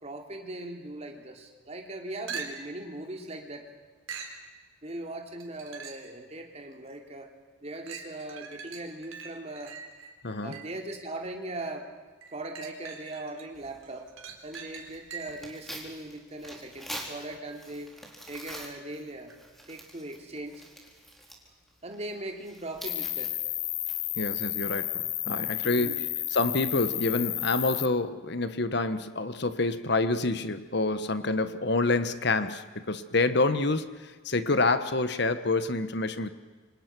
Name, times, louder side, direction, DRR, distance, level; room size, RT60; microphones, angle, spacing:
voice 1, 0.0-3.7 4.8-7.3 7.6-9.8 10.4-11.9 12.3-14.1 14.4-17.9 18.3-19.3 19.7-20.6 21.8-23.4 25.6-26.1 33.5-33.7, right 2 dB, 30° right, 3 dB, 3.2 m, -39 dB
sound 1, 2.3-2.8 4.1-4.4 5.4-6.1 6.7-6.8 7.9-10.8 12.2-13.4 13.8-15.5 19.3-19.4, right 5 dB, 80° right, 4.2 m, -42 dB
voice 2, 10.2-10.6 24.2-26.0 26.3-33.8 34.2-36.3, left 3 dB, 55° left, 11 dB, 1.2 m, -27 dB
Tearing, 13.5-24.3, right 1 dB, ahead, 4.0 m, -47 dB
Cricket, 22.9-27.9, left 14 dB, 40° left, 0.7 m, -32 dB
28.0 x 26.0 x 6.2 m, 1.4 s
head